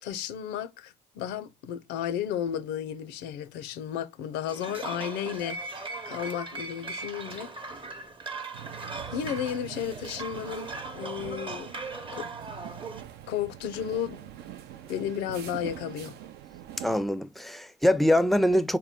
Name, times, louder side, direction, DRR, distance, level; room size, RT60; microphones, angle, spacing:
voice 1, 0.0-7.5 9.1-10.7 10.9-11.7 12.1-12.3 13.3-14.3 14.9-16.1, left 9 dB, 85° left, 0.5 m, -33 dB
sound 1, 4.5-13.0, right 3 dB, 30° right, 0.7 m, -39 dB
sound 2, 8.5-17.0, right 11 dB, 75° right, 0.5 m, -44 dB
voice 2, 16.8-18.8, left 1 dB, ahead, 0.4 m, -23 dB
3.6 x 2.2 x 3.5 m
supercardioid pair, 70°, 17 cm